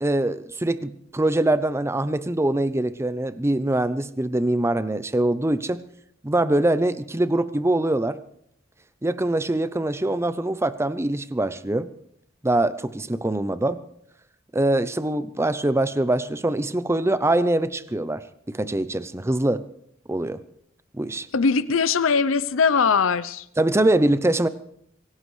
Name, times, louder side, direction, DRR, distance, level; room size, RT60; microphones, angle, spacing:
voice 1, 0.0-5.8 6.2-8.2 9.0-11.9 12.4-13.8 14.5-19.6 20.1-20.4 20.9-21.3 23.6-24.5, right 1 dB, 15° right, 13 dB, 0.6 m, -23 dB
voice 2, 21.3-23.5, left 5 dB, 75° left, 15 dB, 0.6 m, -21 dB
25.0 x 17.0 x 3.2 m, 0.72 s
head